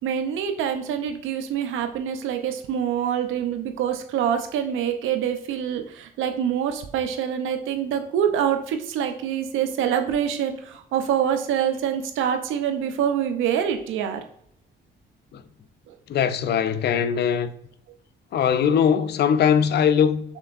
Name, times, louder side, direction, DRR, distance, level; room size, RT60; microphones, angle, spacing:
voice 1, 0.0-14.2, right 9 dB, 85° right, 0.6 m, -25 dB
voice 2, 16.1-17.5 18.3-20.2, left 8 dB, 55° left, 0.4 m, -20 dB
5.6 x 3.4 x 2.5 m
cardioid pair, 90°, 20 cm